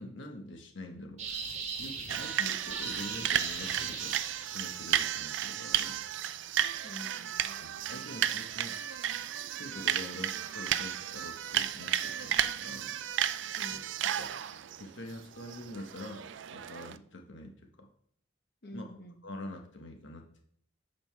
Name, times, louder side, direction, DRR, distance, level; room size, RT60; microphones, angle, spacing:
voice 1, 0.0-4.2 4.5-6.0 7.6-9.0 9.5-12.9 14.2-14.3 14.8-17.9 18.7-18.9 19.2-20.3, left 1 dB, 80° left, 3 dB, 1.1 m, -45 dB
sound 1, 1.2-4.9, right 5 dB, 35° right, 1.1 m, -39 dB
sound 2, 2.1-17.0, right 10 dB, 75° right, 0.4 m, -33 dB
voice 2, 6.8-8.1 13.5-13.8 18.6-19.2, left 1 dB, 55° left, 4 dB, 1.1 m, -48 dB
7.5 x 5.2 x 4.6 m, 0.64 s
head